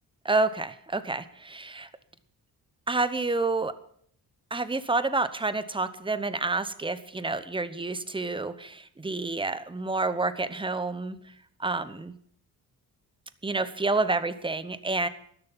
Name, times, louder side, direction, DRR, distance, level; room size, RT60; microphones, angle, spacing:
voice 1, 0.2-1.9 2.9-3.7 4.5-11.2 11.6-12.1 13.4-15.1, right 3 dB, 15° right, 13 dB, 0.8 m, -29 dB
12.5 x 11.5 x 5.4 m, 0.63 s
cardioid pair, 105°, 39 cm